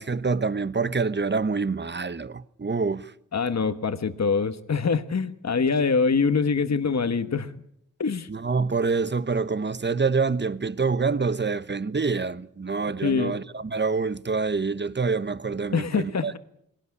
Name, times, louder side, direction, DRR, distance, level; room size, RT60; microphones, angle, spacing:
voice 1, 0.0-3.1 8.3-16.4, right 4 dB, 35° right, 1.0 m, -26 dB
voice 2, 3.3-7.5 8.0-8.3 13.0-13.4 15.7-16.4, left 5 dB, 55° left, 1.3 m, -24 dB
21.5 x 18.0 x 9.7 m
wide cardioid pair, 75°, 33 cm